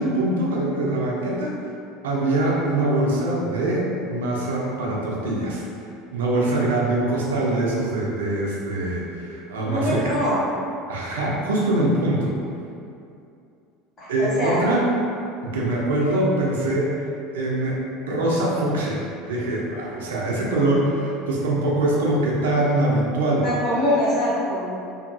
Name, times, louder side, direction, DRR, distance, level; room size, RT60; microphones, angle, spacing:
voice 1, 0.0-1.5 2.0-5.6 6.1-10.2 10.9-12.3 14.1-14.8 15.4-16.9 17.3-17.8 18.1-23.5, right 1 dB, 70° right, -3 dB, 0.5 m, -23 dB
voice 2, 9.5-10.4 14.0-14.6 23.4-24.7, left 1 dB, 40° left, -13 dB, 1.3 m, -24 dB
2.6 x 2.5 x 2.6 m, 2.6 s
figure-of-eight pair, 70°, 0 cm